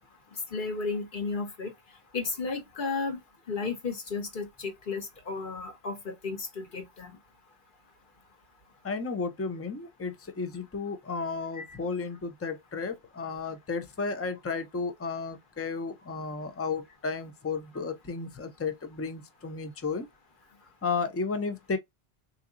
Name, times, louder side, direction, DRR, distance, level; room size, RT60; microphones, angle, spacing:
voice 1, 0.5-1.7 2.1-3.2 3.5-7.2 11.5-11.8, left 4 dB, 55° left, 1.1 m, -33 dB
voice 2, 8.8-20.1 20.8-21.8, left 4 dB, 20° left, 0.4 m, -33 dB
3.7 x 2.8 x 2.5 m
omnidirectional pair, 1.1 m